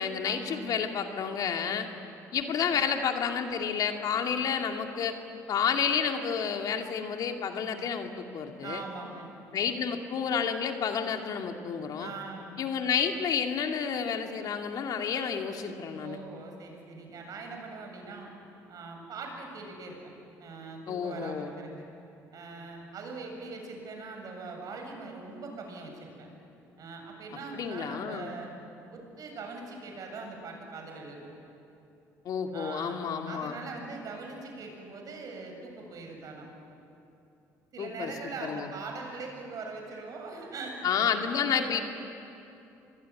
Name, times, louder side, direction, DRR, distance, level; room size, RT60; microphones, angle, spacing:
voice 1, 0.0-1.9 2.3-5.1 5.5-8.8 9.5-12.1 12.6-16.2 20.9-21.5 27.5-28.3 32.2-33.6 37.8-38.1 38.4-38.7 40.8-41.8, left 7 dB, 60° left, 4 dB, 2.4 m, -30 dB
voice 2, 8.6-9.3 12.0-12.6 16.0-18.3 18.7-20.0 20.4-21.9 22.3-26.3 26.8-28.5 28.9-31.3 32.5-33.0 33.3-36.5 37.7-41.8, right 3 dB, 55° right, 2 dB, 7.7 m, -42 dB
26.0 x 21.5 x 9.8 m, 2.8 s
supercardioid pair, 75°, 7 cm